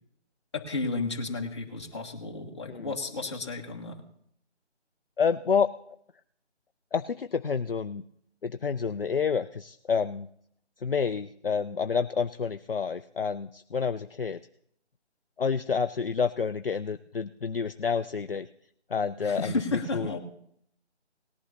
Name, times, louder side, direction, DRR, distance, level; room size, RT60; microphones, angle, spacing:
voice 1, 0.5-4.0 19.2-20.2, left 3 dB, 25° left, 0 dB, 1.4 m, -32 dB
voice 2, 5.2-6.0 6.9-8.0 8.4-10.3 10.8-14.4 15.4-18.5 18.9-19.6 19.9-20.2, left 6 dB, 55° left, 9 dB, 0.5 m, -29 dB
19.0 x 11.0 x 2.8 m, 0.70 s
figure-of-eight pair, 165°, 35 cm